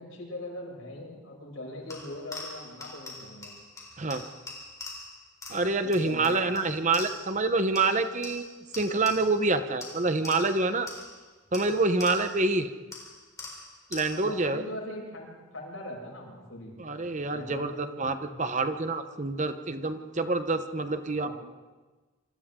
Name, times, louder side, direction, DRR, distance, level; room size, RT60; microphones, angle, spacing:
voice 1, 0.0-3.5 5.8-6.7 14.1-15.3 15.5-16.8 17.3-18.4 21.1-21.3, left 1 dB, 85° left, -1 dB, 7.4 m, -40 dB
sound 1, 1.9-7.4 7.7-9.5 9.8-12.5 12.9-14.4, left 3 dB, 15° left, 3.9 m, -44 dB
voice 2, 5.5-8.5 8.8-10.9 11.5-12.7 13.9-14.6 16.8-21.3, right 3 dB, 35° right, 9 dB, 1.0 m, -27 dB
27.0 x 25.5 x 3.8 m, 1.3 s
head